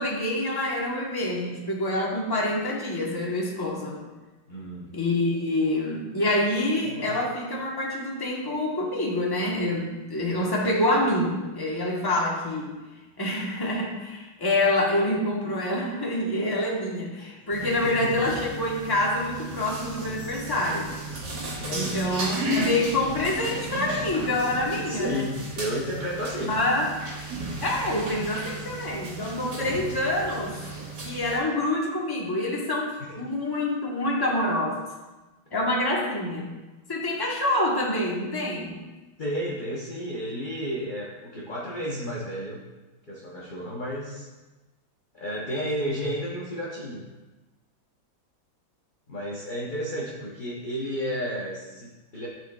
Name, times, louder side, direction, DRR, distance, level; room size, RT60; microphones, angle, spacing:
voice 1, 0.0-4.0 4.9-12.8 13.2-20.9 21.7-25.3 26.5-26.9 27.6-30.6 31.0-34.8 35.5-36.5 36.9-38.8, left 1 dB, 15° left, -3 dB, 0.8 m, -26 dB
voice 2, 4.5-4.9 6.8-7.2 17.2-17.3 17.6-18.2 19.6-19.7 21.6-22.0 24.9-26.6 29.5-29.7 33.0-33.3 39.2-42.6 43.1-44.3 45.1-47.0 49.1-52.3, equal, 50° left, -6 dB, 0.5 m, -32 dB
sound 1, 17.5-31.4, right 1 dB, 60° right, 2.1 m, -34 dB
12.0 x 4.3 x 2.3 m, 1.2 s
omnidirectional pair, 2.1 m